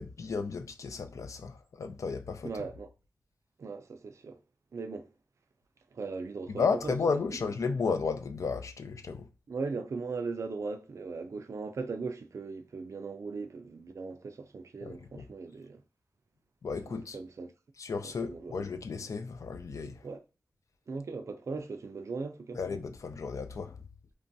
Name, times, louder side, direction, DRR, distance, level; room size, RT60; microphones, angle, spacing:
voice 1, 0.0-2.5 6.6-9.3 14.8-15.2 16.6-17.2 17.8-20.0 22.5-23.8, left 5 dB, 75° left, 0.4 m, -33 dB
voice 2, 2.4-2.9 3.6-4.4 4.7-5.1 5.9-7.5 9.5-15.8 16.9-17.5 18.0-18.5 20.0-20.2 20.9-22.6, right 4 dB, 65° right, 0.4 m, -38 dB
3.1 x 2.2 x 2.6 m
wide cardioid pair, 65°, 5 cm